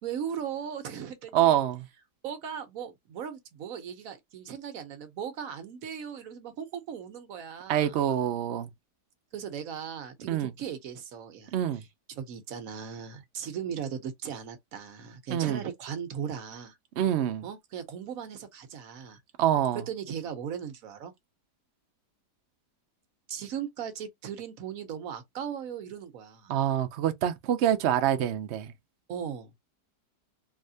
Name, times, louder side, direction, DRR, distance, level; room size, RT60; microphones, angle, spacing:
voice 1, 0.0-1.6 2.2-7.9 9.3-11.5 12.1-16.8 17.4-19.2 19.9-21.1 23.3-26.5 29.1-29.5, right 8 dB, 60° right, 1.1 m, -38 dB
voice 2, 1.3-1.9 7.7-8.7 10.2-10.5 11.5-11.8 15.3-15.6 17.0-17.5 19.4-19.8 26.5-28.7, right 11 dB, 85° right, 0.6 m, -26 dB
3.2 x 2.8 x 2.6 m
omnidirectional pair, 1.8 m